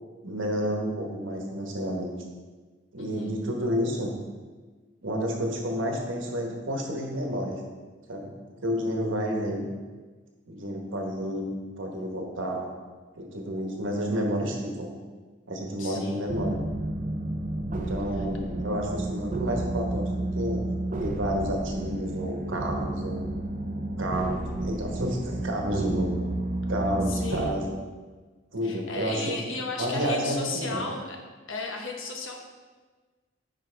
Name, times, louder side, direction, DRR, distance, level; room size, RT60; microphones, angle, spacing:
voice 1, 0.2-2.1 2.9-4.1 5.0-7.6 8.1-8.3 8.6-9.7 10.5-12.7 13.1-14.9 15.5-16.7 17.7-20.6 21.0-23.3 24.0-26.2 26.7-27.8 28.5-29.5 29.8-30.8, equal, 75° right, 1 dB, 1.2 m, -30 dB
voice 2, 3.0-3.3 15.8-16.3 27.1-27.6 28.6-31.2 31.5-32.4, left 3 dB, 80° left, 1 dB, 1.0 m, -35 dB
sound 1, 16.3-27.5, right 1 dB, 40° right, 0.5 m, -31 dB
9.5 x 4.5 x 3.4 m, 1.4 s
head